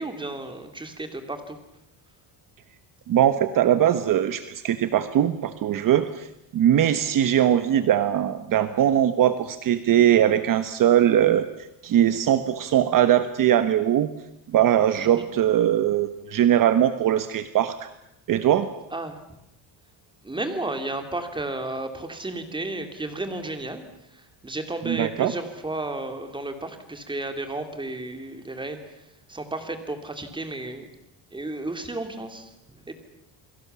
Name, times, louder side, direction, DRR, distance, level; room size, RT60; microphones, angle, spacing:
voice 1, 0.0-1.6 15.0-15.3 18.9-19.2 20.2-23.8 24.1-30.9 31.3-32.9, right 2 dB, 10° right, 6 dB, 3.2 m, -33 dB
voice 2, 3.1-6.3 6.5-11.5 11.8-14.1 14.5-17.9 18.3-18.7 24.9-25.3, right 10 dB, 50° right, 11 dB, 1.4 m, -21 dB
29.5 x 22.5 x 7.1 m, 0.83 s
cardioid pair, 140°, 43 cm